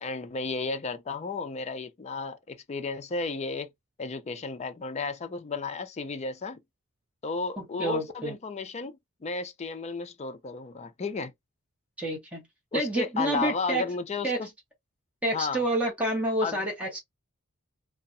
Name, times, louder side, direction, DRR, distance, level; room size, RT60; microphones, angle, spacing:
voice 1, 0.0-3.7 4.0-6.6 7.2-11.3 12.7-14.3 15.3-15.6 16.4-16.6, left 4 dB, 30° left, 0.4 m, -33 dB
voice 2, 7.6-8.3 12.0-12.5 12.7-13.8 14.2-14.4 15.2-17.0, right 1 dB, 5° right, 0.9 m, -28 dB
2.6 x 2.1 x 2.5 m
head